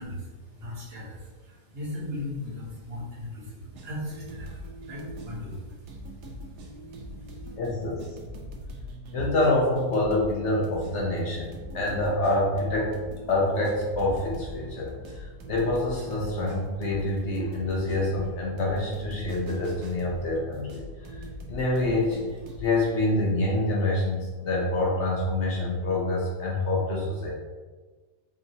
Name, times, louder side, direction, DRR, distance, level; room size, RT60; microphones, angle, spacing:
voice 1, 0.0-7.5, left 1 dB, 40° right, -7 dB, 1.4 m, -39 dB
sound 1, 3.6-22.8, right 1 dB, 90° right, 1.3 m, -42 dB
voice 2, 7.6-8.2 9.1-11.5 11.7-12.9 13.3-21.2 21.5-27.3, left 2 dB, 55° left, -3 dB, 0.9 m, -26 dB
4.8 x 3.0 x 2.7 m, 1.4 s
omnidirectional pair, 1.7 m